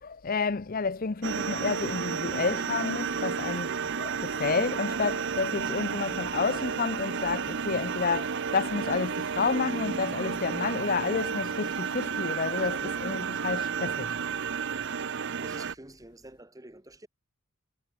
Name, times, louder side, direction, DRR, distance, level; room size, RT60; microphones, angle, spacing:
voice 1, 0.0-14.2, left 4 dB, 40° left, 0.6 m, -30 dB
sound 1, 1.2-15.7, right 6 dB, 55° right, 0.7 m, -32 dB
voice 2, 15.4-17.1, right 1 dB, 15° right, 1.3 m, -48 dB
head